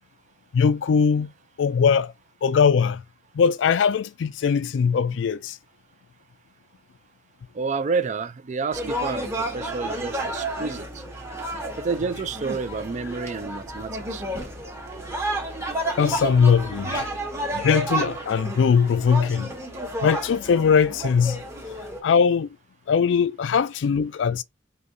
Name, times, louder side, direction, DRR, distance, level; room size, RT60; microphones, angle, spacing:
voice 1, 0.5-1.3 1.6-2.1 2.4-3.0 3.3-5.6 16.0-17.1 17.5-19.5 20.0-21.4 22.0-22.5 22.9-24.4, left 6 dB, 75° left, 0.4 m, -20 dB
voice 2, 7.5-11.0 11.8-14.2, right 4 dB, 40° right, 0.4 m, -29 dB
sound 1, 8.7-22.0, right 1 dB, 15° right, 0.9 m, -31 dB
4.8 x 2.7 x 2.6 m
head